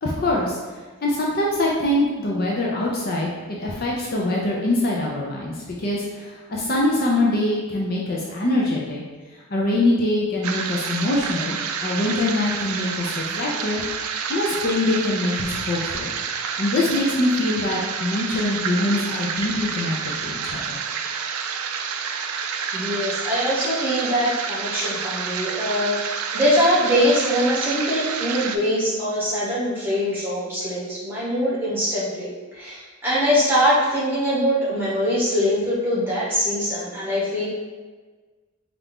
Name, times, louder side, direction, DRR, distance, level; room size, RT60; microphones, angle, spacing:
voice 1, 0.0-0.6 1.0-9.0 9.5-13.8 14.3-16.1 16.6-20.8, left 2 dB, 45° left, -3 dB, 0.5 m, -23 dB
sound 1, 10.4-28.6, right 6 dB, 85° right, 0.4 m, -29 dB
voice 2, 22.7-37.5, equal, 10° right, -9 dB, 1.3 m, -23 dB
4.4 x 2.5 x 3.5 m, 1.4 s
head